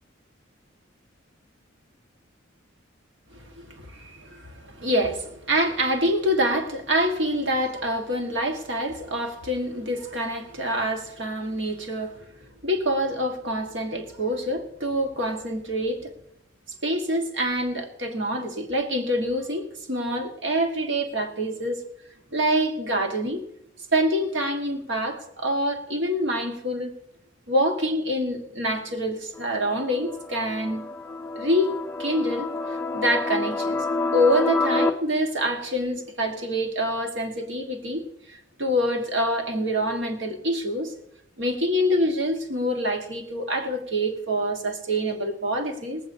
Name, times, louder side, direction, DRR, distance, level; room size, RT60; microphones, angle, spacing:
voice 1, 3.3-12.2 12.6-16.1 16.8-21.8 22.3-23.4 23.9-26.9 27.5-30.9 31.3-31.7 32.0-32.5 32.9-40.9 41.4-46.0, equal, 65° right, 4 dB, 1.6 m, -26 dB
sound 1, 29.4-34.9, left 3 dB, 10° left, 0.5 m, -28 dB
18.0 x 15.0 x 2.8 m, 0.76 s
head